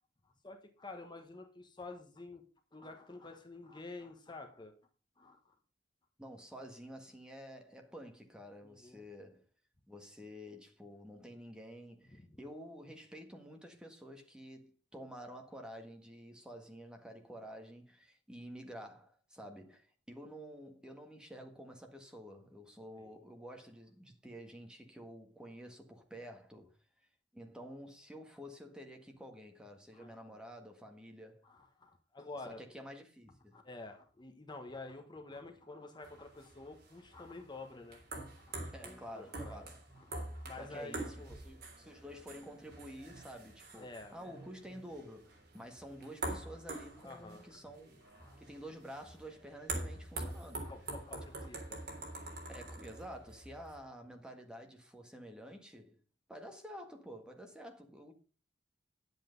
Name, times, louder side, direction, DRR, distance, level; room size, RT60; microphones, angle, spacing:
voice 1, 0.2-2.4 2.7-4.7 5.2-5.4 8.6-9.0 12.1-12.3 23.0-23.1 29.9-30.4 31.4-32.6 33.5-39.6 39.9-41.4 43.7-44.2 47.0-47.5 48.0-48.4 49.8-50.1 50.6-51.9, left 3 dB, 25° left, 1.2 m, -50 dB
voice 2, 6.2-9.4 9.9-26.7 27.3-31.4 32.5-33.6 38.7-39.8 40.6-48.0 48.4-50.7 52.5-56.0 56.3-58.1, equal, 5° right, 1.7 m, -50 dB
sound 1, 36.0-53.8, right 2 dB, 60° right, 3.6 m, -46 dB
10.5 x 8.1 x 5.2 m
head